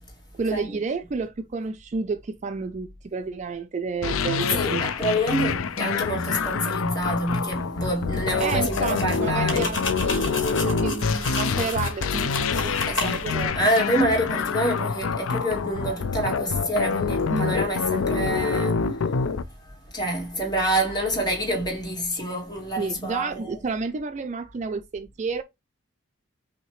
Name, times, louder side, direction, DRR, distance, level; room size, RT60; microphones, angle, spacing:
voice 1, 0.4-4.8 8.4-13.6 17.3-17.6 22.8-25.4, right 4 dB, 35° right, 0.3 m, -30 dB
sound 1, 4.0-19.4, left 5 dB, 90° left, 0.5 m, -26 dB
voice 2, 4.5-9.7 12.9-13.3 13.5-23.6, right 1 dB, 20° left, 2.2 m, -27 dB
sound 2, 8.3-13.5, left 2 dB, 65° left, 1.7 m, -32 dB
5.8 x 2.8 x 3.0 m
head